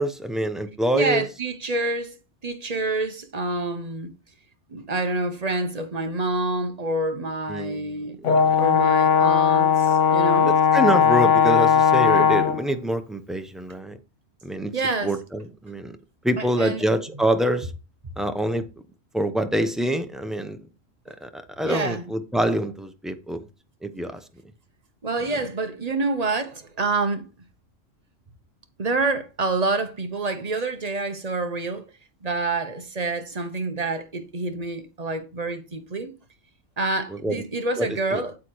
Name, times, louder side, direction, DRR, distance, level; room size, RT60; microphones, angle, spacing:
voice 1, 0.0-1.3 7.5-8.6 10.5-14.0 14.4-14.7 15.0-16.0 16.2-17.7 18.2-18.7 19.1-20.6 21.2-23.4 23.8-24.2 37.1-37.4 37.8-38.2, right 1 dB, ahead, 0.4 m, -26 dB
voice 2, 0.9-2.1 2.4-4.1 4.7-8.2 8.6-10.5 14.7-15.1 16.4-16.8 21.6-22.1 25.0-27.3 28.8-31.9 32.2-36.1 36.8-38.4, right 2 dB, 35° right, 0.9 m, -27 dB
Brass instrument, 8.2-12.6, left 7 dB, 70° left, 1.1 m, -18 dB
8.5 x 8.3 x 3.0 m
omnidirectional pair, 1.3 m